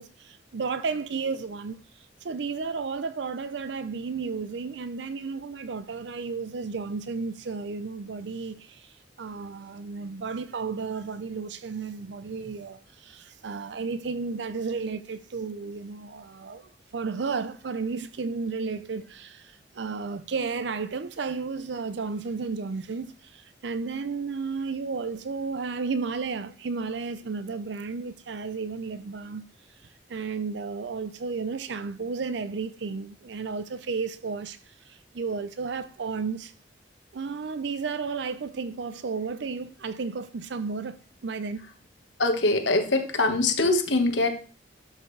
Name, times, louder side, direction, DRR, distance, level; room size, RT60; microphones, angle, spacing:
voice 1, 0.0-36.5 37.1-41.7, right 4 dB, 75° right, 0.5 m, -33 dB
voice 2, 42.2-44.3, left 2 dB, 80° left, 1.5 m, -23 dB
12.0 x 6.7 x 3.3 m
head